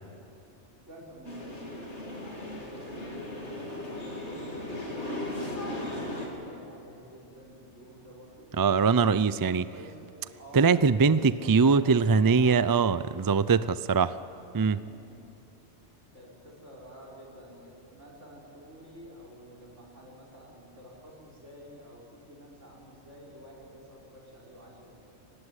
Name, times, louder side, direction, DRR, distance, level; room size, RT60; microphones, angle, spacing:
voice 1, 0.9-8.6 9.0-10.0 10.3-12.6 14.6-15.5 16.1-24.9, equal, 85° right, -2 dB, 5.9 m, -50 dB
sound 1, 1.2-6.3, left 1 dB, 75° left, 4.1 m, -37 dB
voice 2, 8.6-9.7 10.5-14.2 14.5-14.8, right 5 dB, 35° right, 15 dB, 0.3 m, -22 dB
25.0 x 19.0 x 9.8 m, 2.7 s
omnidirectional pair, 1.2 m